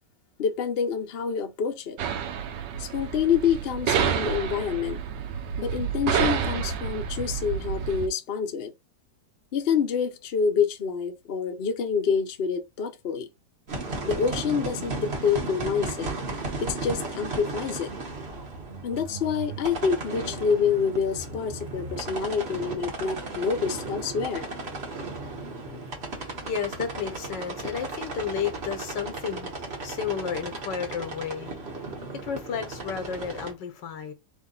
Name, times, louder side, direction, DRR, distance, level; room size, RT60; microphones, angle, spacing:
voice 1, 0.4-2.0 2.8-5.0 5.6-8.7 9.5-13.3 14.0-16.1 16.6-17.9 18.8-24.5, left 6 dB, 50° left, 0.8 m, -27 dB
sound 1, 2.0-8.1, right 7 dB, 80° right, 1.4 m, -29 dB
sound 2, 13.7-33.5, right 3 dB, 40° right, 1.3 m, -35 dB
voice 2, 26.0-34.1, left 7 dB, 85° left, 1.6 m, -33 dB
3.6 x 3.5 x 3.8 m
omnidirectional pair, 1.9 m